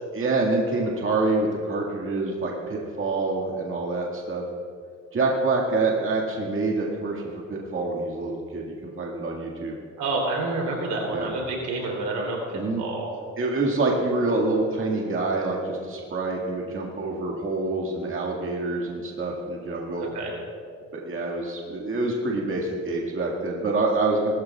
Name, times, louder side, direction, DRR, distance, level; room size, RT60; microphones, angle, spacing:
voice 1, 0.1-4.4 5.1-9.8 11.1-11.3 12.5-12.8 13.4-20.1 20.9-24.3, right 3 dB, 45° right, -2 dB, 2.0 m, -26 dB
voice 2, 10.0-13.1 20.0-20.3, right 2 dB, 80° right, -1 dB, 3.4 m, -28 dB
19.5 x 13.5 x 2.4 m, 2.2 s
cardioid pair, 90°, 30 cm